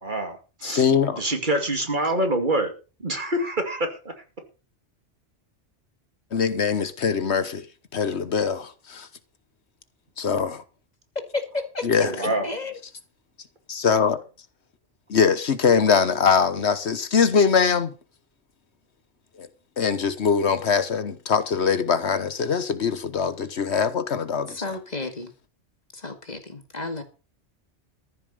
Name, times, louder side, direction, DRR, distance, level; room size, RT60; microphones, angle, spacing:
voice 1, 0.0-0.9 1.2-2.7 3.0-4.1 11.9-12.5, right 1 dB, 45° right, 2.5 m, -26 dB
voice 2, 0.6-1.2 6.3-7.6 7.9-9.1 10.2-10.6 11.8-12.2 13.7-14.2 15.1-17.9 19.4-19.5 19.8-24.8, left 6 dB, 70° left, 1.4 m, -22 dB
voice 3, 11.3-11.9 12.4-12.7 24.6-25.3 26.0-27.0, left 3 dB, 35° left, 2.1 m, -31 dB
14.5 x 7.1 x 6.7 m
omnidirectional pair, 1.2 m